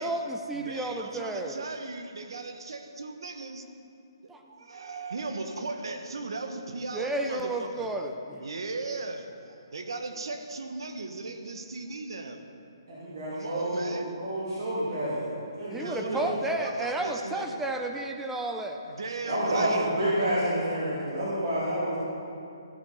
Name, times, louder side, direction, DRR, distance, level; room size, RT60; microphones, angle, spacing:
voice 1, 0.0-1.7 4.3-4.4 6.9-8.4 15.7-18.8, right 1 dB, 5° right, 3 dB, 0.5 m, -32 dB
voice 2, 0.6-3.6 4.5-7.9 8.4-12.4 13.3-14.1 15.8-17.6 18.9-19.9, right 3 dB, 80° right, 6 dB, 1.1 m, -37 dB
voice 3, 12.9-16.2 19.2-22.0, right 1 dB, 60° right, -8 dB, 2.9 m, -29 dB
14.5 x 6.6 x 5.5 m, 2.5 s
hypercardioid pair, 150°, 2 cm